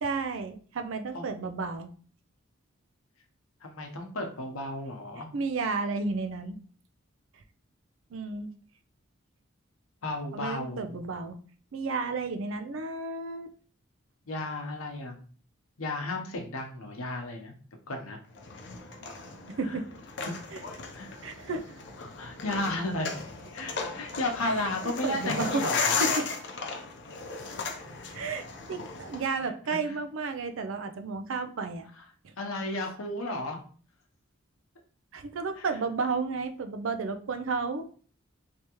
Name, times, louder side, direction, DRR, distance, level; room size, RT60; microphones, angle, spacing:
voice 1, 0.0-1.9 5.3-6.6 8.1-8.5 10.3-11.4 11.7-13.5 19.5-19.8 20.5-20.6 21.2-21.6 24.4-24.7 25.0-25.6 26.0-26.2 28.1-31.8 32.2-32.3 35.1-37.8, right 4 dB, 70° right, 8 dB, 0.4 m, -32 dB
voice 2, 3.6-5.3 10.0-10.9 14.3-15.2 15.8-17.5 17.9-18.2 19.6-19.8 20.9-21.1 22.0-23.1 23.5-26.0 29.4-29.5 29.9-30.0 32.4-33.6 35.6-35.7, left 2 dB, 85° left, 3 dB, 0.8 m, -33 dB
sound 1, 18.4-29.2, left 4 dB, 55° left, 0.6 m, -35 dB
3.4 x 2.9 x 3.0 m, 0.43 s
head